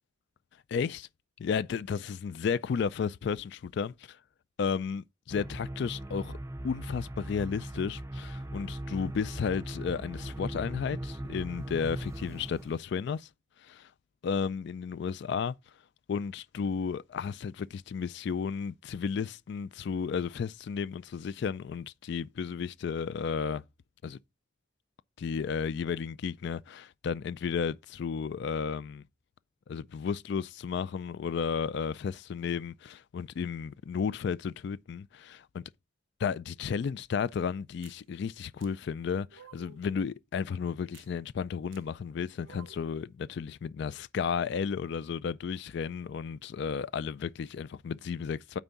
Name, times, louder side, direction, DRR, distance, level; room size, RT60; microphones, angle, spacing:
voice 1, 0.7-1.1 1.4-4.2 4.6-6.4 6.6-13.3 13.6-13.9 14.2-15.5 16.1-23.6 24.0-24.2 25.2-29.0 29.7-35.6 36.2-48.6, left 6 dB, 60° left, 0.3 m, -33 dB
sound 1, 5.3-12.8, right 1 dB, 15° right, 0.5 m, -39 dB
sound 2, 37.8-38.0 38.6-38.7 39.3-39.9 40.9-41.1 41.7-41.8 42.4-43.0, right 7 dB, 75° right, 0.5 m, -53 dB
9.1 x 3.5 x 5.6 m
head